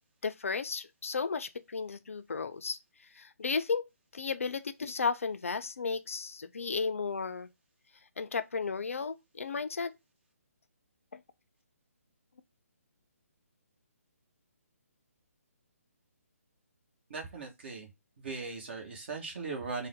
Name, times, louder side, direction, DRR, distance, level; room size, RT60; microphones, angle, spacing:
voice 1, 0.2-2.8 3.1-7.5 8.2-9.9 11.1-11.2, left 5 dB, 60° left, 0.4 m, -34 dB
voice 2, 17.1-17.9 18.2-19.9, right 4 dB, 45° right, 1.3 m, -39 dB
3.8 x 2.2 x 3.5 m
figure-of-eight pair, 140°, 8 cm